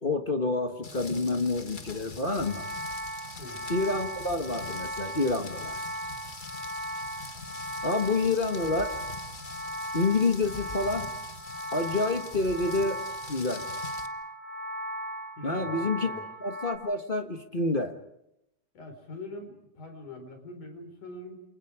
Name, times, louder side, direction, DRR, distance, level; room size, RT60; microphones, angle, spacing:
voice 1, 0.0-2.6 3.7-5.8 7.8-8.9 9.9-11.1 11.7-13.0 13.3-13.6 15.4-16.1 16.4-17.9, left 3 dB, 35° left, 5 dB, 0.8 m, -28 dB
Rain, 0.8-14.1, left 4 dB, 55° left, 0.5 m, -44 dB
sound 1, 2.3-16.8, equal, 40° right, 5.6 m, -37 dB
voice 2, 15.4-16.2 18.7-21.4, left 2 dB, 85° left, 7 dB, 5.9 m, -43 dB
29.0 x 28.5 x 5.0 m, 0.83 s
omnidirectional pair, 3.5 m